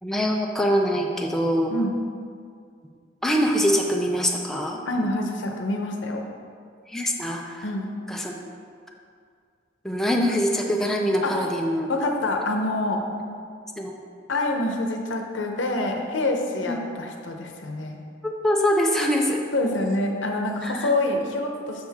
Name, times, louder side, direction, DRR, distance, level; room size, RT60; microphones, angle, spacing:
voice 1, 0.0-1.7 3.2-4.8 6.9-7.7 8.1-8.5 9.8-11.9 13.8-14.0 16.7-16.8 18.2-19.4 20.6-20.9, equal, ahead, 0 dB, 0.5 m, -24 dB
voice 2, 4.9-6.2 7.6-7.9 11.2-11.3 11.9-13.0 14.3-18.0 19.5-21.9, left 2 dB, 90° left, 3 dB, 0.8 m, -26 dB
6.4 x 6.4 x 3.5 m, 2.2 s
head